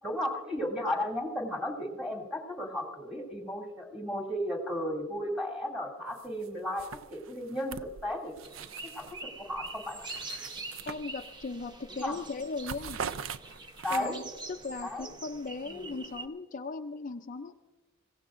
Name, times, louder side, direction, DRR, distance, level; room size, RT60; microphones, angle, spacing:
voice 1, 0.0-8.3 8.8-10.1 11.9-12.2 13.8-14.2 14.8-15.1 15.7-16.0, left 1 dB, 5° right, 0 dB, 2.5 m, -34 dB
sound 1, 6.2-6.5 6.8-9.2 9.6-11.5 11.9-12.1 12.4-14.3, right 6 dB, 80° right, 0.5 m, -42 dB
sound 2, 8.4-16.3, right 2 dB, 20° right, 0.8 m, -45 dB
voice 2, 10.9-13.0 13.9-14.2 14.5-17.6, left 3 dB, 40° left, 6 dB, 0.4 m, -38 dB
23.5 x 16.5 x 2.5 m, 1.3 s
head